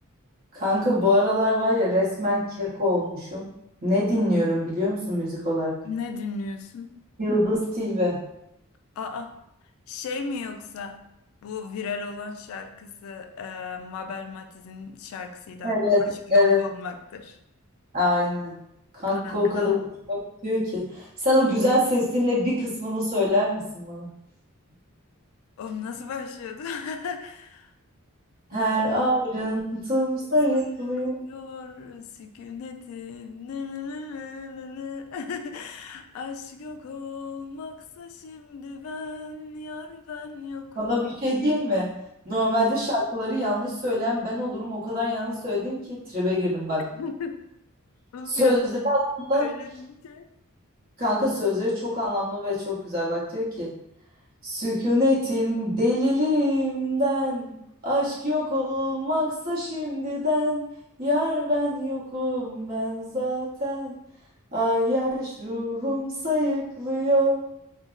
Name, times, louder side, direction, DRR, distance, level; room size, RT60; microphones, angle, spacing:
voice 1, 0.5-3.5 3.8-5.8 7.2-8.2 15.6-16.0 16.3-16.6 17.9-18.6 18.9-19.8 20.1-24.1 28.5-31.2 40.8-41.9 42.2-46.8 48.3-49.4 51.0-53.7 54.4-57.5 57.8-60.6 61.0-63.9 64.5-67.4, left 1 dB, 45° right, -6 dB, 0.9 m, -24 dB
voice 2, 5.8-6.9 9.0-9.3 9.9-11.0 11.4-15.8 16.3-17.4 19.1-19.8 25.6-27.7 28.5-28.7 29.6-30.1 30.7-40.9 42.3-42.5 46.9-47.4 48.1-48.6 49.3-50.3, left 5 dB, 70° left, 7 dB, 0.3 m, -36 dB
2.2 x 2.0 x 3.6 m, 0.81 s
head